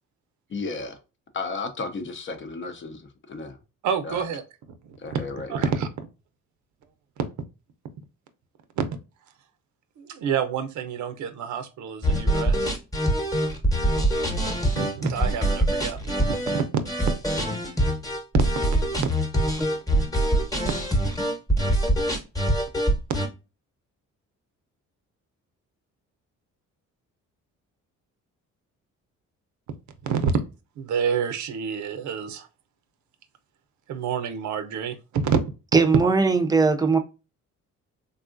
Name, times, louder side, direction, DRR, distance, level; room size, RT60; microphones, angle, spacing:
voice 1, 0.5-1.0 1.3-3.6 4.0-4.2 5.0-5.7, left 4 dB, 40° left, 0.7 m, -34 dB
voice 2, 3.8-4.4 4.7-5.9 7.2-7.3 8.8-8.9 10.0-12.7 14.7-16.8 23.1-23.2 30.0-30.3 30.8-32.5 33.9-35.4, right 7 dB, 75° right, 0.6 m, -28 dB
sound 1, 12.0-23.3, right 1 dB, 10° left, 1.0 m, -24 dB
voice 3, 35.7-37.0, right 4 dB, 15° right, 0.5 m, -19 dB
3.6 x 2.3 x 2.4 m
cardioid pair, 90°, 30 cm